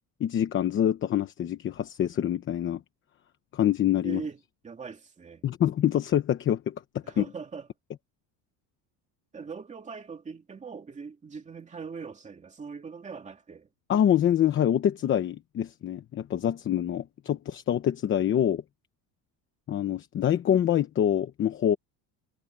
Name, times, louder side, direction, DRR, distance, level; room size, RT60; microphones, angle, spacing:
voice 1, 0.2-2.8 3.5-4.2 5.4-6.7 7.2-7.3 13.9-18.6 19.7-21.8, left 10 dB, 30° left, 0.9 m, -25 dB
voice 2, 4.0-5.4 7.0-7.7 9.3-13.7 17.3-17.4, right 5 dB, 15° right, 2.4 m, -41 dB
cardioid pair, 180°, 42 cm